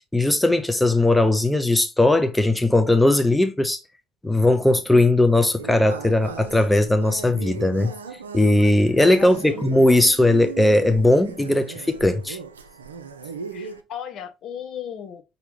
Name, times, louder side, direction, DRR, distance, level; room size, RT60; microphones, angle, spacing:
voice 1, 0.1-3.8 4.2-7.9 8.3-12.4, left 1 dB, 5° left, 0.6 m, -18 dB
sound 1, 5.6-13.8, right 5 dB, 80° right, 0.4 m, -37 dB
voice 2, 9.2-9.7 13.5-15.2, left 9 dB, 50° left, 0.8 m, -36 dB
5.6 x 2.7 x 3.3 m
figure-of-eight pair, 60°, 0 cm